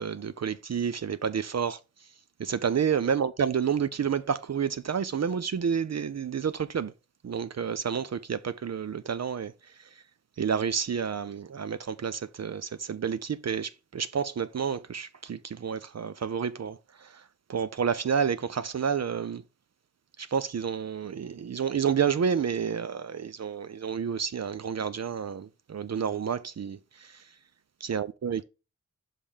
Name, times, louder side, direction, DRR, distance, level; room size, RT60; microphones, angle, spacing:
voice 1, 0.0-1.8 2.4-6.9 7.2-10.0 10.4-17.2 17.5-19.4 20.2-27.3 27.8-28.4, right 7 dB, 65° right, 0.5 m, -30 dB
5.8 x 5.4 x 4.9 m
wide cardioid pair, 75°, 29 cm